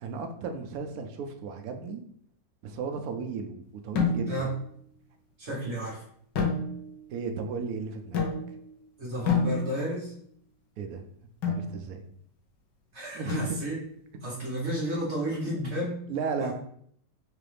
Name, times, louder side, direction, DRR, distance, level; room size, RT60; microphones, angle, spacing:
voice 1, 0.0-2.0 2.6-4.3 5.5-5.6 7.1-8.2 10.8-11.0 11.4-12.0 13.1-13.6 16.1-16.5, right 5 dB, 70° right, 5 dB, 0.9 m, -34 dB
sound 1, 4.0-4.6 6.3-7.1 8.1-8.7 9.3-10.1 11.4-11.7 13.3-13.9, left 4 dB, 85° left, 1.5 m, -29 dB
voice 2, 5.4-6.0 9.0-10.1 12.9-13.8 14.2-16.0 16.4-16.5, equal, 45° right, -5 dB, 1.3 m, -32 dB
4.7 x 2.5 x 3.3 m, 0.65 s
omnidirectional pair, 1.9 m